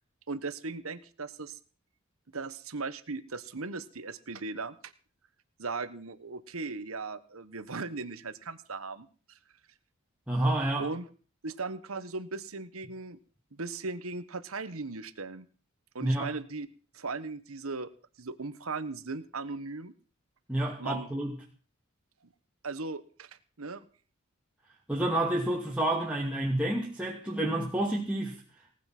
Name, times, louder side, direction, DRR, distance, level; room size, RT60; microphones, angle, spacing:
voice 1, 0.3-1.6 2.3-4.9 5.6-9.4 10.8-11.1 11.4-13.2 13.5-15.5 15.9-16.7 16.9-17.9 18.2-19.9 20.8-21.1 22.6-23.3 23.6-23.8, right 3 dB, 80° right, 12 dB, 1.3 m, -38 dB
voice 2, 10.3-10.9 16.0-16.3 20.5-21.3 24.9-28.4, right 1 dB, 5° right, -3 dB, 2.5 m, -29 dB
19.0 x 10.0 x 6.0 m, 0.40 s
head